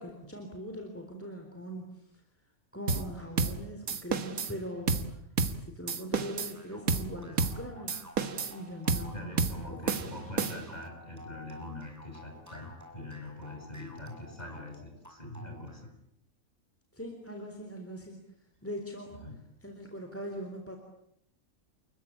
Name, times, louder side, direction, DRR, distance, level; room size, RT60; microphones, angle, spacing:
voice 1, 0.0-2.1 2.7-5.2 5.6-8.1 8.5-10.2 16.9-18.2 18.6-19.1 19.6-20.8, equal, 10° left, 3 dB, 3.8 m, -41 dB
sound 1, 2.9-3.1 3.4-3.6 3.9-4.5 4.9-5.1 5.4-5.6 5.9-6.5 6.9-7.1 7.4-7.6 7.9-8.6 8.9-9.1 9.4-9.6 9.9-10.8, right 4 dB, 85° right, 2.1 m, -30 dB
sound 2, 6.5-15.9, left 1 dB, 10° right, 5.8 m, -51 dB
voice 2, 9.1-15.9 19.1-19.4, left 1 dB, 30° left, 3 dB, 7.8 m, -43 dB
29.5 x 22.0 x 8.8 m, 0.74 s
omnidirectional pair, 1.4 m